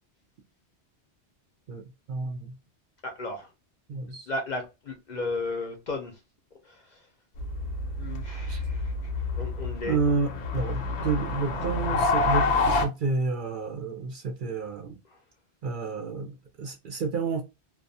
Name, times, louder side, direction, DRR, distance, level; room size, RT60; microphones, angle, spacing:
voice 1, 2.1-2.5 3.9-4.3 8.5-8.6 9.8-14.9 15.6-17.4, right 4 dB, 60° right, 0.6 m, -30 dB
voice 2, 3.0-3.5 4.3-6.2 6.6-7.1 8.0-8.9 9.3-10.0 15.1-15.2, left 2 dB, 50° left, 0.6 m, -34 dB
sound 1, 7.4-12.9, left 3 dB, 75° left, 0.9 m, -28 dB
2.3 x 2.3 x 2.6 m
omnidirectional pair, 1.1 m